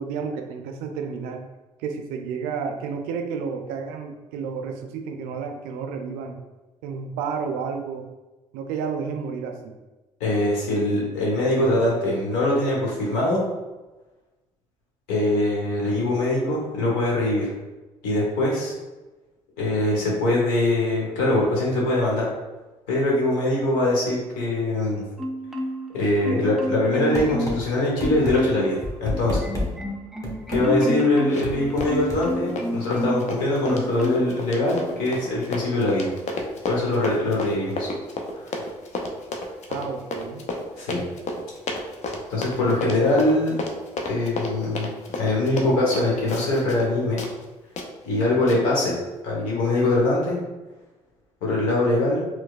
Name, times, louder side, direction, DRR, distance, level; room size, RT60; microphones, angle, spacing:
voice 1, 0.0-1.4 1.8-6.4 6.8-8.1 8.5-9.7 39.7-40.5, right 6 dB, 75° right, 4 dB, 0.4 m, -31 dB
voice 2, 10.2-13.4 15.1-17.5 18.0-18.7 19.6-22.3 22.9-25.0 25.9-29.4 30.5-36.1 36.7-37.9 38.4-38.5 40.8-41.0 42.3-43.5 44.1-44.9 45.2-47.2 48.0-48.9 49.2-50.4 51.4-52.2, left 1 dB, 75° left, -4 dB, 1.1 m, -22 dB
Marimba xylophone, 25.2-26.0 26.2-27.7 28.0-28.7 29.1-33.3 33.6-34.4 34.8-35.0, equal, ahead, 0.5 m, -28 dB
sound 1, 27.1-27.6 28.0-28.3 28.8-29.7 30.2-30.6 31.4-32.2, left 1 dB, 20° left, 1.2 m, -28 dB
Run, 31.3-31.6 31.8-46.9 47.2-47.3 47.8-47.9 48.5-48.6, left 2 dB, 50° left, 0.6 m, -32 dB
4.5 x 2.2 x 2.4 m, 1.1 s
hypercardioid pair, 50°, 15 cm